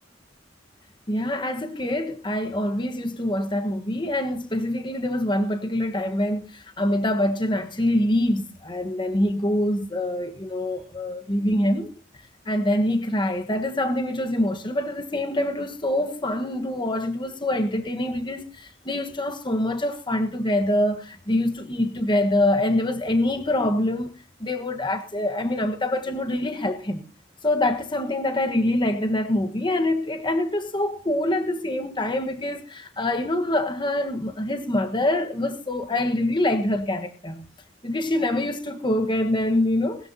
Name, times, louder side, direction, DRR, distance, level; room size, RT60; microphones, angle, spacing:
voice 1, 1.1-11.9 12.5-24.1 24.4-27.0 27.4-37.4 37.8-40.1, left 1 dB, 25° left, 1.4 m, -25 dB
21.0 x 13.0 x 2.8 m
head